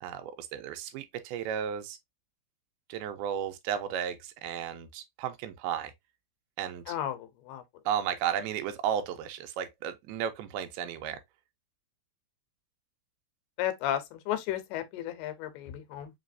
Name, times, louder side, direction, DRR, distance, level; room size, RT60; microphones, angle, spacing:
voice 1, 0.0-2.0 2.9-5.9 6.6-6.9 7.9-11.2, right 9 dB, 80° right, 2.4 m, -34 dB
voice 2, 6.9-7.2 7.5-7.6 13.6-14.0 14.3-16.1, left 11 dB, 90° left, 2.7 m, -33 dB
6.0 x 2.8 x 2.5 m
omnidirectional pair, 4.6 m